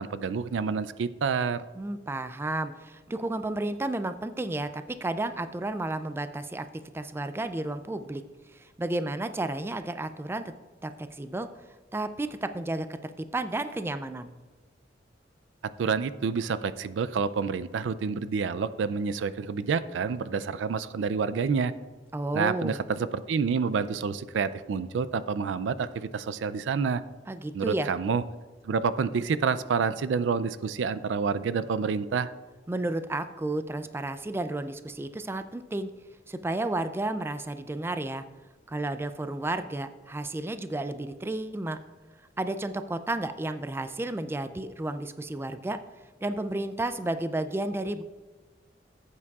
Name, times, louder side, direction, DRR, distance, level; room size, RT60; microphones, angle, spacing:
voice 1, 0.0-1.6 15.8-21.7 22.3-27.0 27.5-28.2 28.6-32.3, right 5 dB, 85° right, 15 dB, 0.4 m, -28 dB
voice 2, 1.8-6.7 6.9-8.2 8.5-10.5 10.8-11.5 11.9-14.3 22.1-22.8 27.3-27.9 32.7-35.9 36.3-38.2 38.7-41.8 42.4-45.8 46.2-48.0, right 2 dB, 15° right, 10 dB, 0.3 m, -32 dB
15.0 x 8.4 x 2.4 m, 1.3 s
head